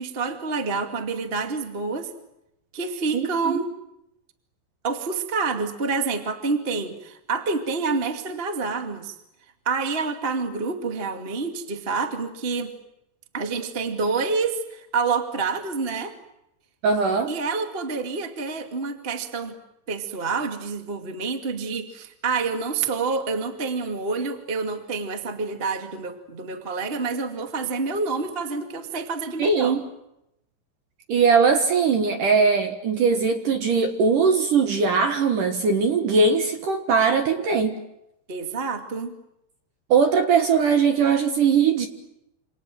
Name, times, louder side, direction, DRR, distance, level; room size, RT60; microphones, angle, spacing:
voice 1, 0.0-2.1 2.7-3.7 4.8-9.1 9.6-12.7 13.3-16.1 17.3-19.5 19.9-29.8 38.3-39.1, right 4 dB, 25° right, 6 dB, 1.2 m, -28 dB
voice 2, 3.1-3.6 16.8-17.3 29.4-29.8 31.1-37.8 39.9-41.9, right 5 dB, 60° right, 7 dB, 2.5 m, -20 dB
28.0 x 27.0 x 7.7 m, 0.82 s
omnidirectional pair, 5.4 m